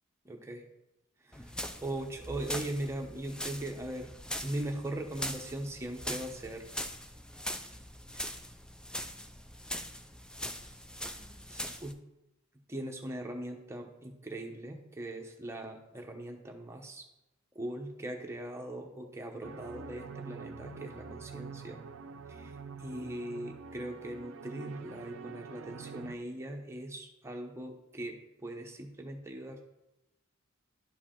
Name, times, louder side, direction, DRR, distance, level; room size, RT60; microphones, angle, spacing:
voice 1, 0.2-0.6 1.2-4.1 4.4-6.6 8.1-8.3 11.5-12.0 12.7-17.1 17.5-21.8 22.3-29.7, right 1 dB, 15° right, 2 dB, 0.8 m, -40 dB
sound 1, 1.3-11.9, equal, 5° left, 0.3 m, -41 dB
sound 2, 19.4-26.1, right 5 dB, 70° right, 0.5 m, -46 dB
11.0 x 4.7 x 3.8 m, 0.94 s
head